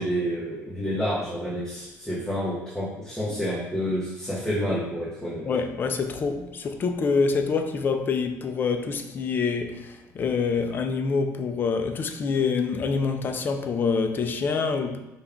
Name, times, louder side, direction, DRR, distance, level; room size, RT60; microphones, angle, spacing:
voice 1, 0.0-5.5, equal, 5° left, -9 dB, 0.9 m, -29 dB
voice 2, 5.4-15.0, left 5 dB, 35° left, 6 dB, 0.4 m, -26 dB
5.1 x 2.3 x 3.5 m, 0.98 s
cardioid pair, 135°, 6 cm